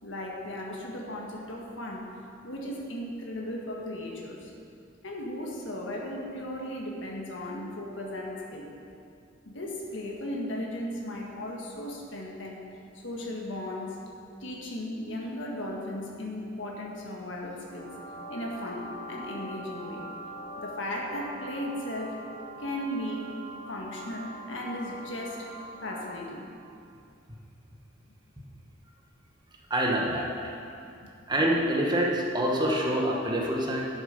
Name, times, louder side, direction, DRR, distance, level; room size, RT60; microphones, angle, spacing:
voice 1, 0.0-2.2 2.4-4.5 5.0-8.7 9.4-12.7 12.9-14.0 14.4-17.9 18.3-20.1 20.6-22.2 22.6-23.3 23.7-25.5 25.8-26.5 30.6-30.7 31.0-31.1, left 1 dB, 70° left, -1 dB, 1.6 m, -36 dB
sound 1, 17.6-26.4, right 1 dB, 10° left, 2.1 m, -43 dB
voice 2, 29.7-30.5 31.3-33.8, right 1 dB, 25° right, -2 dB, 1.2 m, -26 dB
11.5 x 6.8 x 5.3 m, 2.5 s
head